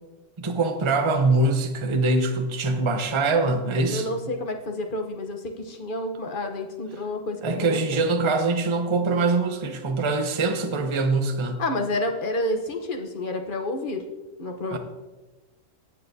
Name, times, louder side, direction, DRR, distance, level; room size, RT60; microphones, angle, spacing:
voice 1, 0.4-4.1 7.4-11.6 14.7-14.8, right 3 dB, 25° right, 5 dB, 0.7 m, -23 dB
voice 2, 3.9-8.0 11.6-14.0 14.4-14.8, left 1 dB, 40° left, 4 dB, 1.0 m, -29 dB
17.5 x 6.7 x 2.7 m, 1.2 s
omnidirectional pair, 1.4 m